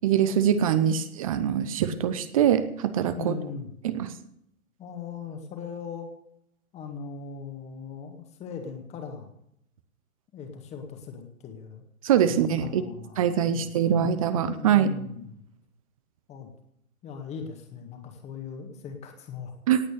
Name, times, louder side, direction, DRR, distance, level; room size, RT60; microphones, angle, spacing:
voice 1, 0.0-3.4 3.8-4.1 12.0-12.8 13.2-14.9 19.7-19.8, right 9 dB, 25° right, 12 dB, 0.8 m, -23 dB
voice 2, 3.2-3.7 4.8-6.1 6.7-9.3 10.3-11.8 12.4-14.1 14.5-15.4 16.3-16.5 17.0-19.5, left 6 dB, 15° left, 5 dB, 1.9 m, -39 dB
18.0 x 8.7 x 6.7 m, 0.74 s
figure-of-eight pair, 125°, 42 cm